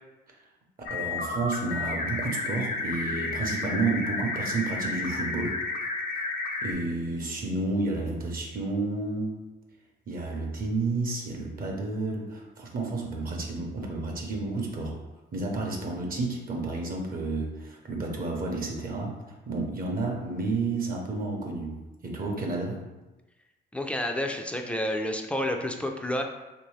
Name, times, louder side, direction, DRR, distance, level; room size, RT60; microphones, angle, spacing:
sound 1, 0.9-6.7, left 3 dB, 50° left, 0.6 m, -32 dB
voice 1, 0.9-5.6 6.6-9.3 10.1-15.0 15.3-22.8, right 3 dB, 45° right, 0 dB, 0.7 m, -31 dB
voice 2, 23.7-26.2, left 1 dB, 5° left, 3 dB, 0.3 m, -29 dB
3.1 x 2.6 x 3.1 m, 1.1 s
cardioid pair, 90°, 20 cm